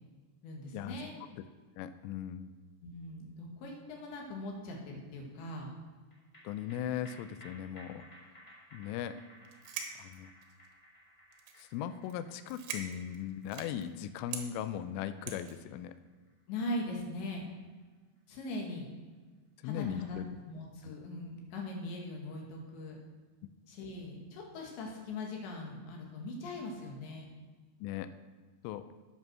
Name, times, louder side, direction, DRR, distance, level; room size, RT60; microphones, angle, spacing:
voice 1, 0.4-1.2 2.8-5.7 16.5-17.4 18.3-18.9 19.6-20.2 20.5-23.0 23.7-27.3, left 2 dB, 70° left, 0 dB, 3.9 m, -40 dB
voice 2, 1.8-2.5 6.4-8.0 8.7-9.2 10.0-10.3 11.6-15.9 19.6-20.3 20.8-20.9 27.8-28.1 28.6-28.8, left 10 dB, 85° left, 11 dB, 3.1 m, -38 dB
sound 1, 6.1-18.8 19.1-19.2, equal, 25° left, 2.0 m, -59 dB
sound 2, 9.4-10.7 11.3-11.7 12.0-12.2 12.4-13.9 14.3-14.4 15.3-15.6, right 7 dB, 80° right, 3.7 m, -42 dB
9.1 x 8.9 x 6.2 m, 1.4 s
omnidirectional pair, 5.7 m